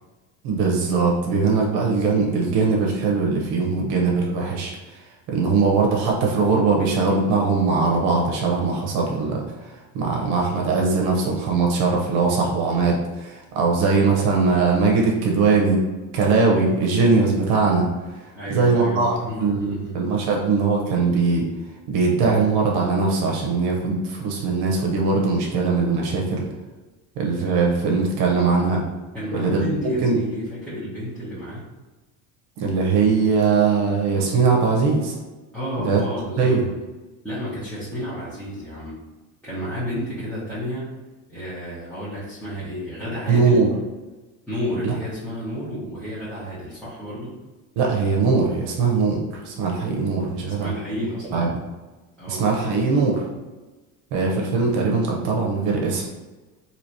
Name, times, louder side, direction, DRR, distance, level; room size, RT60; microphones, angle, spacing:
voice 1, 0.4-15.8 16.1-21.5 21.9-26.4 27.2-28.8 29.3-30.2 32.6-35.1 35.8-36.0 36.4-36.6 43.3-43.7 44.8-44.9 47.8-50.7 51.3-51.5 52.3-53.3 54.1-56.0, right 4 dB, 70° right, -1 dB, 0.8 m, -21 dB
voice 2, 18.3-20.0 29.1-31.6 35.5-36.6 37.2-39.0 39.4-40.9 41.3-43.7 44.5-47.3 50.5-51.5 52.2-52.5, equal, 5° left, -13 dB, 1.1 m, -31 dB
3.1 x 2.8 x 2.7 m, 1.2 s
supercardioid pair, 105°, 42 cm